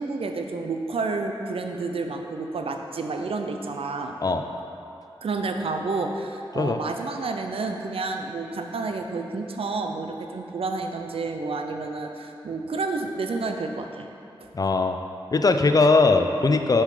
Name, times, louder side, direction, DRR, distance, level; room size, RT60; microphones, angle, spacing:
voice 1, 0.0-4.2 5.2-14.1 14.4-14.5, right 3 dB, 80° right, 4 dB, 0.6 m, -30 dB
voice 2, 14.5-15.0 15.3-16.8, left 3 dB, 40° left, 6 dB, 0.4 m, -20 dB
6.7 x 5.6 x 4.9 m, 2.7 s
wide cardioid pair, 95°, 10 cm